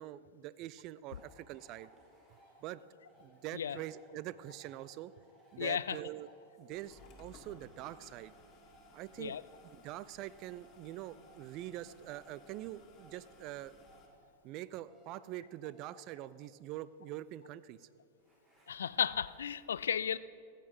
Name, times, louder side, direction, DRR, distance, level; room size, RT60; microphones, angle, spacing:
voice 1, 0.0-1.9 2.6-2.8 3.2-5.1 5.5-6.3 6.6-8.3 8.9-9.4 9.6-13.7 14.4-17.9, right 14 dB, 40° right, 17 dB, 0.4 m, -44 dB
sound 1, 1.1-19.6, right 1 dB, 20° right, 3.5 m, -65 dB
voice 2, 5.6-6.0 9.2-9.4 18.7-20.2, left 8 dB, 70° left, 17 dB, 0.3 m, -34 dB
sound 2, 6.7-14.1, left 3 dB, 35° left, 1.9 m, -61 dB
14.5 x 9.1 x 4.8 m, 2.3 s
figure-of-eight pair, 90°, 0 cm